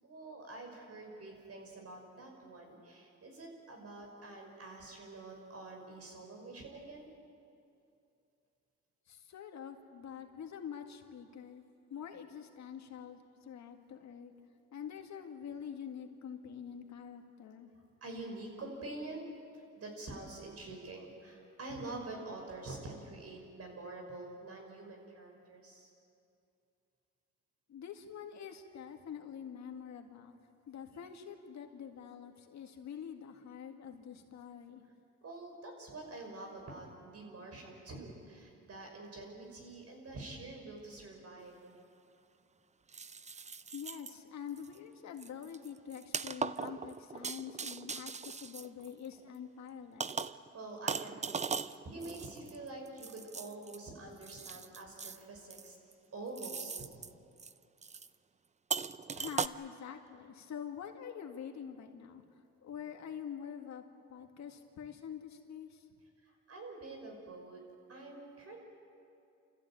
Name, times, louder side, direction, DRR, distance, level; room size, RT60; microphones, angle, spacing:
voice 1, 0.0-7.1 18.0-19.3 19.5-25.9 35.2-41.8 50.5-55.8 56.1-56.9 66.2-67.6 67.9-68.6, right 2 dB, 55° right, 2 dB, 5.8 m, -47 dB
voice 2, 9.1-11.6 11.9-14.3 14.7-17.7 27.7-30.4 30.7-34.8 43.7-50.2 59.1-62.2 62.6-63.8 64.1-65.9, left 8 dB, 65° left, 4 dB, 2.1 m, -46 dB
sound 1, 41.4-41.5 42.9-44.2 44.6-44.8 45.2-49.3 50.0-50.5 50.9-53.8 54.2-55.2 55.5-55.9 56.4-57.1 57.4-57.5 57.8-58.1 58.7-59.5, right 5 dB, 25° right, 0.6 m, -39 dB
29.0 x 14.5 x 8.8 m, 2.5 s
cardioid pair, 90°, 30 cm